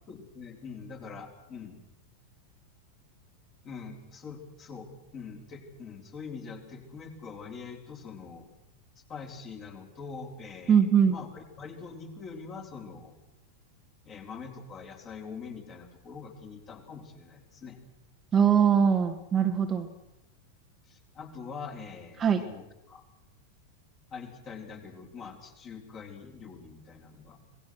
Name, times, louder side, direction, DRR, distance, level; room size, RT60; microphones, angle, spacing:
voice 1, 0.0-1.8 3.6-8.5 9.1-13.2 14.0-17.8 20.9-23.0 24.1-27.4, left 5 dB, 30° left, 3 dB, 4.0 m, -44 dB
voice 2, 10.7-11.2 18.3-19.9 22.2-22.4, right 7 dB, 20° right, 5 dB, 1.8 m, -22 dB
26.5 x 19.0 x 6.3 m, 0.90 s
figure-of-eight pair, 90°, 0 cm